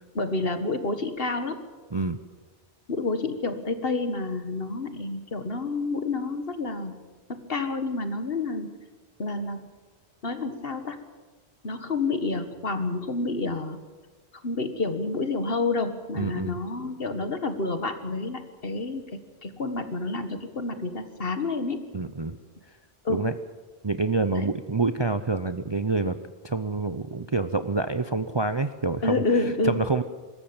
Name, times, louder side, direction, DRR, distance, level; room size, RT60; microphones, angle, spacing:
voice 1, 0.1-1.6 2.9-6.9 7.3-8.7 9.2-9.7 10.2-11.0 11.6-13.8 14.4-21.9 23.0-23.2 24.4-24.5 29.0-29.8, left 3 dB, 55° left, 9 dB, 1.9 m, -29 dB
voice 2, 16.2-16.6 21.9-22.4 23.1-23.3 23.8-26.2 26.4-29.2 29.6-30.0, right 3 dB, 30° right, 10 dB, 0.6 m, -27 dB
23.5 x 13.5 x 8.9 m, 1.4 s
omnidirectional pair, 1.2 m